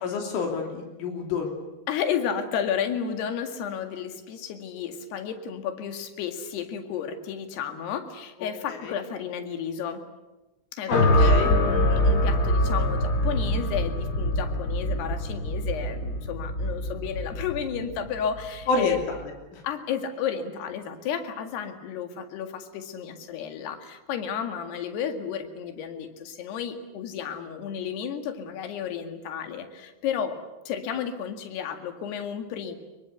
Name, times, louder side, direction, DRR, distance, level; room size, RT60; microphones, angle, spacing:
voice 1, 0.0-1.5 8.7-9.0 10.9-11.5 18.7-19.2 19.5-19.6, left 4 dB, 90° left, 2 dB, 5.5 m, -28 dB
voice 2, 1.9-10.0 10.7-19.0 19.6-30.4 30.7-32.8, left 8 dB, 65° left, 6 dB, 3.9 m, -32 dB
sound 1, 10.9-19.1, left 1 dB, 40° left, 1.5 m, -24 dB
26.0 x 23.0 x 8.3 m, 1.1 s
omnidirectional pair, 5.4 m